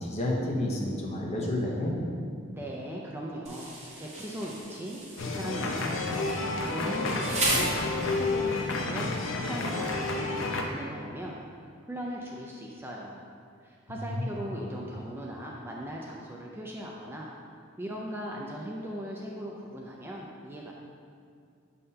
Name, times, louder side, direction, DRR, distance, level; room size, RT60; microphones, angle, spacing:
voice 1, 0.0-2.0 14.1-14.3, left 1 dB, 35° left, -2 dB, 0.8 m, -30 dB
voice 2, 2.5-7.8 8.1-11.4 11.8-13.2 13.6-17.3 17.8-20.7, equal, 10° right, -3 dB, 0.4 m, -39 dB
Insect, 3.4-8.4, right 1 dB, 35° right, 0.9 m, -35 dB
sound 1, 5.2-10.6, left 3 dB, 70° left, 0.6 m, -30 dB
6.6 x 5.6 x 2.8 m, 2.3 s
head